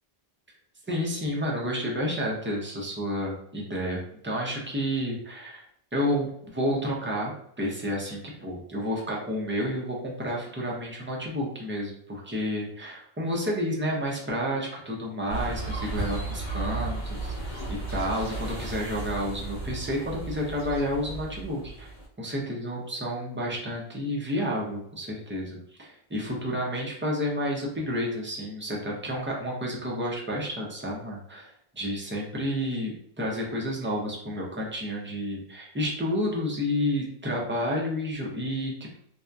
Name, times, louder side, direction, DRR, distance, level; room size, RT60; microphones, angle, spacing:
voice 1, 0.9-5.6 5.9-17.4 17.7-21.9 22.2-32.9 33.2-39.0, equal, 15° right, -3 dB, 0.4 m, -30 dB
sound 1, 15.3-22.1, right 2 dB, 50° left, 0.9 m, -34 dB
2.7 x 2.4 x 2.2 m, 0.68 s
omnidirectional pair, 1.0 m